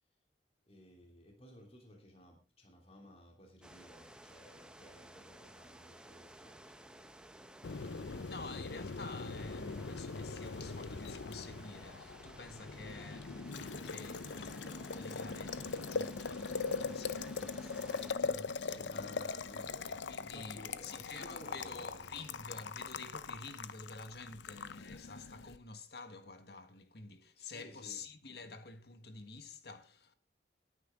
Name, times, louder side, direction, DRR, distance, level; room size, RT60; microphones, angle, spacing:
voice 1, 0.7-7.5 18.5-20.0 20.3-22.5 27.4-28.0, equal, 35° left, 2.9 m, -57 dB
sound 1, 3.6-18.1, right 1 dB, 5° right, 1.0 m, -55 dB
Boiling, 7.6-25.6, left 4 dB, 85° left, 0.8 m, -41 dB
voice 2, 8.3-19.4 19.9-30.1, left 3 dB, 60° left, 1.6 m, -50 dB
18.0 x 9.7 x 3.7 m
head